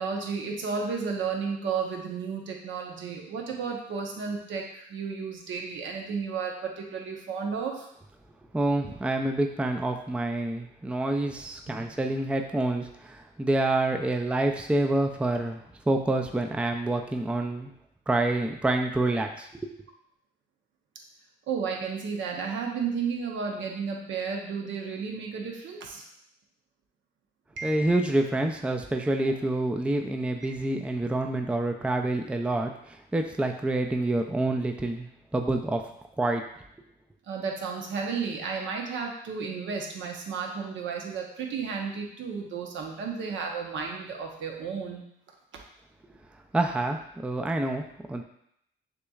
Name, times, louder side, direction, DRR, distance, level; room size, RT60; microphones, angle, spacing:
voice 1, 0.0-7.9 11.7-11.9 21.5-26.0 27.6-27.9 37.3-45.1, right 5 dB, 70° right, 1 dB, 0.9 m, -33 dB
voice 2, 8.5-17.7 18.1-19.7 27.6-35.8 36.2-36.4 46.5-48.2, right 2 dB, 5° right, 4 dB, 0.4 m, -27 dB
6.5 x 3.0 x 2.4 m, 0.73 s
cardioid pair, 90°, 20 cm